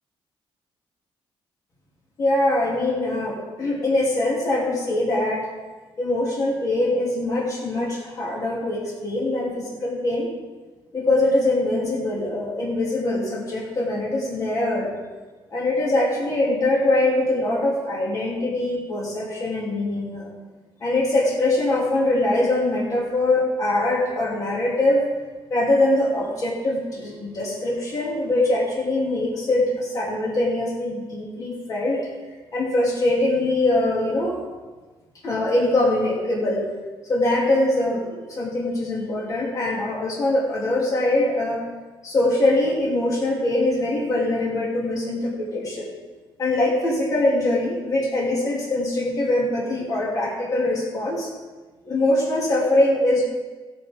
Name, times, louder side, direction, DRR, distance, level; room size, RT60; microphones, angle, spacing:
voice 1, 2.2-5.5 6.0-10.3 10.9-14.9 15.5-20.3 20.8-25.0 25.5-32.1 32.5-34.4 35.2-36.7 37.1-41.6 42.0-45.9 46.4-51.3 51.8-53.2, left 1 dB, 40° left, -3 dB, 2.6 m, -23 dB
15.5 x 8.5 x 3.7 m, 1.3 s
cardioid pair, 160°, 9 cm